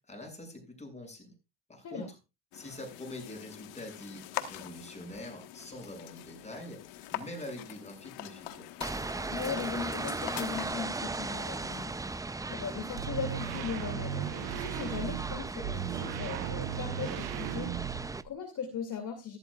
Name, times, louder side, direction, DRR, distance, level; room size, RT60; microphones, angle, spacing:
voice 1, 0.1-1.3 1.7-2.1 2.5-6.8 7.1-8.7, left 1 dB, 15° left, 4 dB, 6.4 m, -44 dB
sound 1, 2.5-10.7, left 13 dB, 80° left, 1.5 m, -43 dB
sound 2, 8.8-18.2, right 3 dB, 10° right, 0.5 m, -37 dB
voice 2, 9.3-19.4, left 7 dB, 45° left, 5 dB, 2.6 m, -39 dB
sound 3, 12.9-18.3, right 12 dB, 85° right, 1.0 m, -37 dB
14.5 x 12.5 x 2.4 m, 0.26 s
supercardioid pair, 90°, 41 cm